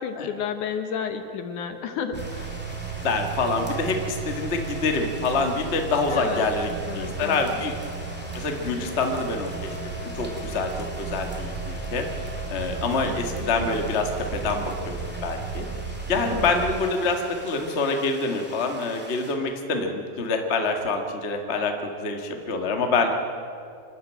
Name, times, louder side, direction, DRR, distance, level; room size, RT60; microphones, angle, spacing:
voice 1, 0.0-2.5 6.1-6.5 6.9-7.6 16.2-16.4, left 7 dB, 65° left, 8 dB, 2.3 m, -31 dB
sound 1, 2.1-19.3, equal, 5° right, 2.4 m, -43 dB
sound 2, 2.1-16.8, right 5 dB, 75° right, 5.1 m, -34 dB
voice 2, 3.0-7.7 8.3-9.8 10.1-12.1 12.5-15.0 15.2-15.7 16.1-23.1, left 3 dB, 40° left, 3 dB, 0.9 m, -26 dB
26.5 x 13.0 x 8.9 m, 2.4 s
omnidirectional pair, 4.2 m